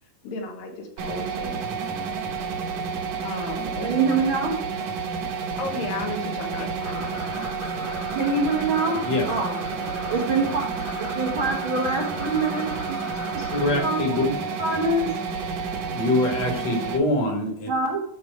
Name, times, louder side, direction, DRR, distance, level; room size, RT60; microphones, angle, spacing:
voice 1, 0.2-1.6 3.2-4.1 5.6-7.1, left 3 dB, 75° left, 3 dB, 2.9 m, -34 dB
sound 1, 1.0-17.0, right 5 dB, 65° right, 2.0 m, -30 dB
voice 2, 3.8-4.6 7.8-7.9 8.1-9.6 10.1-10.6 11.0-13.0 13.3-13.5 13.8-14.2 14.6-15.1 17.7-18.0, right 3 dB, 80° right, 0 dB, 1.1 m, -25 dB
sound 2, 6.8-13.7, left 3 dB, 90° left, 4.6 m, -39 dB
voice 3, 13.5-14.2 15.9-17.7, left 2 dB, 50° left, 2 dB, 2.5 m, -24 dB
13.0 x 5.0 x 4.8 m, 0.69 s
omnidirectional pair, 4.3 m